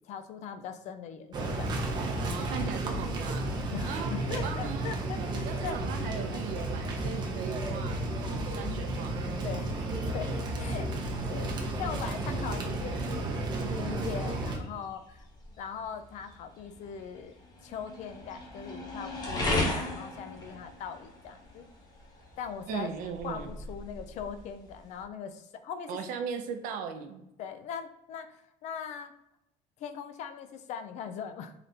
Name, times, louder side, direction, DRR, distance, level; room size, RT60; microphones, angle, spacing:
voice 1, 0.1-1.8 3.7-6.4 9.4-10.9 11.3-15.3 15.6-17.4 17.6-21.7 22.4-22.9 23.2-26.0 27.4-29.1 29.8-31.5, left 7 dB, 50° left, 9 dB, 0.4 m, -40 dB
sound 1, 1.3-14.6, right 2 dB, 30° right, 0.6 m, -32 dB
voice 2, 2.3-3.5 3.8-4.9 5.4-8.1 8.6-9.2 22.7-23.5 25.9-27.2, right 6 dB, 70° right, 6 dB, 0.6 m, -38 dB
sound 2, 12.9-25.0, left 2 dB, 25° left, 0.8 m, -39 dB
3.9 x 3.3 x 2.7 m, 0.86 s
cardioid pair, 175°, 15 cm